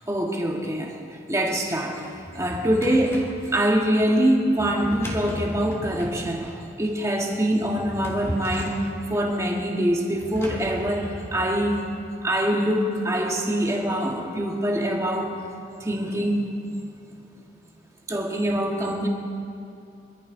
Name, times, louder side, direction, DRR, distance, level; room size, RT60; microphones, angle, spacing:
voice 1, 0.1-0.9 1.3-11.8 12.2-15.3 15.8-16.5 18.1-19.1, right 1 dB, 15° right, 0 dB, 1.8 m, -24 dB
Drawer open or close, 2.1-3.4 4.6-6.2 7.5-8.9 10.2-11.8, equal, 15° left, 2.5 m, -35 dB
26.5 x 13.0 x 3.9 m, 2.5 s
head